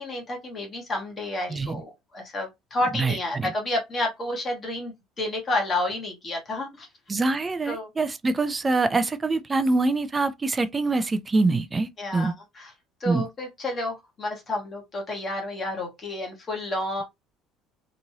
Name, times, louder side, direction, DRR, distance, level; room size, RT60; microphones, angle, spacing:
voice 1, 0.0-6.9 7.7-7.9 12.0-12.7 13.0-17.0, left 1 dB, 25° left, 1.1 m, -30 dB
voice 2, 1.5-1.8 2.9-3.5 7.1-12.3 13.1-13.3, right 3 dB, 15° right, 0.4 m, -25 dB
3.0 x 2.6 x 2.7 m
cardioid pair, 150°, 0 cm